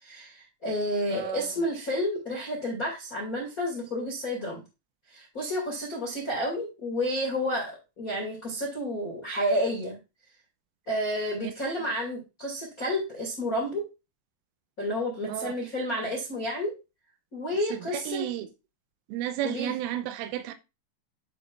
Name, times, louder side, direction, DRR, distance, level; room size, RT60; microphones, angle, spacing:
voice 1, 0.0-4.6 5.1-10.0 10.9-13.8 14.8-16.7 17.3-18.2 19.4-19.7, equal, 45° left, 1.1 m, -30 dB
voice 2, 1.1-1.5 15.3-15.5 17.7-18.5 19.1-20.5, right 12 dB, 85° right, 3.1 m, -32 dB
11.0 x 5.3 x 2.5 m
omnidirectional pair, 5.9 m